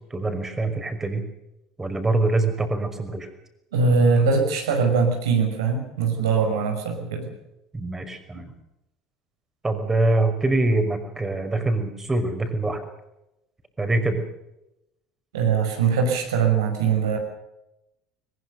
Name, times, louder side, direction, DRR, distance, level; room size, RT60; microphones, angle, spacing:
voice 1, 0.1-1.2 1.8-3.3 7.7-8.5 9.6-12.8 13.8-14.2, right 2 dB, 15° right, 6 dB, 5.6 m, -24 dB
voice 2, 3.7-7.3 15.3-17.2, right 5 dB, 75° right, 2 dB, 5.9 m, -21 dB
22.0 x 21.0 x 6.8 m, 0.89 s
figure-of-eight pair, 65°, 2 cm